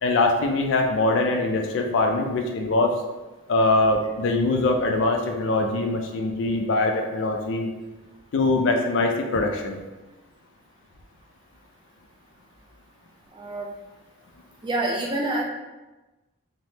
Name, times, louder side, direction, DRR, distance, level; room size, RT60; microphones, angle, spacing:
voice 1, 0.0-2.9 3.5-7.7 8.3-9.8, left 2 dB, 60° left, 3 dB, 0.3 m, -22 dB
voice 2, 13.3-13.7 14.6-15.4, right 2 dB, 20° right, -2 dB, 0.3 m, -27 dB
3.2 x 2.0 x 2.7 m, 1.1 s
head